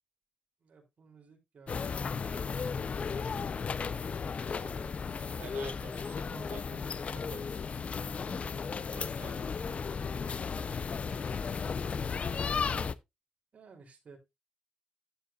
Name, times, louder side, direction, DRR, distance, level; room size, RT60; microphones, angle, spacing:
voice 1, 0.6-5.0 13.5-14.2, right 3 dB, 50° right, 3.0 m, -57 dB
sound 1, 1.7-12.9, left 5 dB, 45° left, 0.6 m, -35 dB
voice 2, 5.4-7.7 8.2-9.8 10.2-10.8, right 6 dB, 85° right, 2.8 m, -51 dB
11.0 x 8.4 x 2.4 m
cardioid pair, 95°, 3 cm